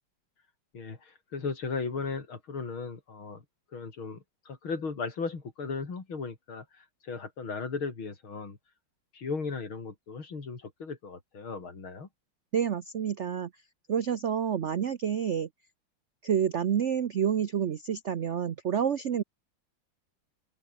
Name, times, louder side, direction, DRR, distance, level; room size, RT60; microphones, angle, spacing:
voice 1, 0.7-3.4 3.7-8.6 9.1-12.1, left 4 dB, 70° left, 4.5 m, -36 dB
voice 2, 12.5-13.5 13.9-15.5 16.2-19.2, right 8 dB, 80° right, 0.6 m, -28 dB
open air
omnidirectional pair, 2.4 m